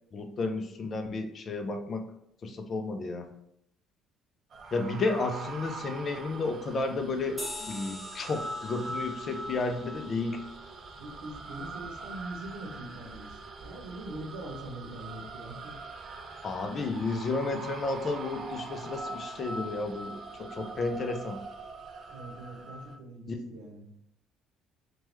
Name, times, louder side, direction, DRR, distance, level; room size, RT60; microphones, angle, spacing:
voice 1, 0.1-2.0 2.4-3.3 4.7-10.4 16.4-21.4 23.3-23.4, left 3 dB, 45° left, 6 dB, 0.4 m, -32 dB
sound 1, 4.5-23.0, right 2 dB, 50° right, 0.4 m, -42 dB
sound 2, 7.4-12.3, left 1 dB, 15° left, 0.9 m, -45 dB
voice 2, 11.0-15.8 22.1-23.9, right 1 dB, 80° right, 1 dB, 0.7 m, -43 dB
3.0 x 2.2 x 3.0 m, 0.76 s
supercardioid pair, 65°, 0 cm